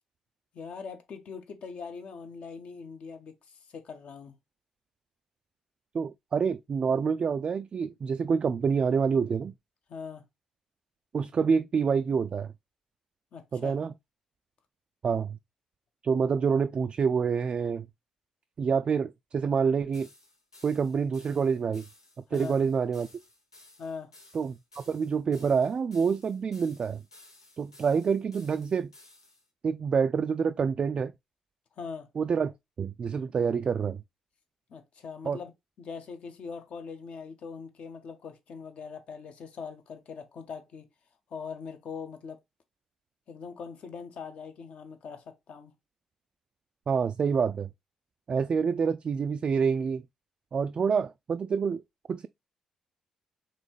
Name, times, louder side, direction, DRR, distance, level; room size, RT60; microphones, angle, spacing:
voice 1, 0.5-4.4 9.9-10.2 13.3-13.7 22.3-22.6 23.8-24.1 31.8-32.1 34.7-35.5 35.8-40.9 41.3-42.4 43.3-45.7, left 5 dB, 55° left, 0.9 m, -41 dB
voice 2, 5.9-9.5 11.1-12.5 13.5-13.9 15.0-15.4 16.0-17.9 18.6-20.1 20.6-21.8 22.3-23.1 24.3-27.0 27.6-28.9 29.6-31.1 32.2-34.0 35.2-35.4 46.9-47.7 48.3-50.0 50.5-51.8 52.1-52.3, right 6 dB, 40° right, 0.3 m, -27 dB
sound 1, 19.9-29.4, left 2 dB, 90° left, 0.6 m, -56 dB
4.2 x 3.2 x 3.1 m
figure-of-eight pair, 40°, 3 cm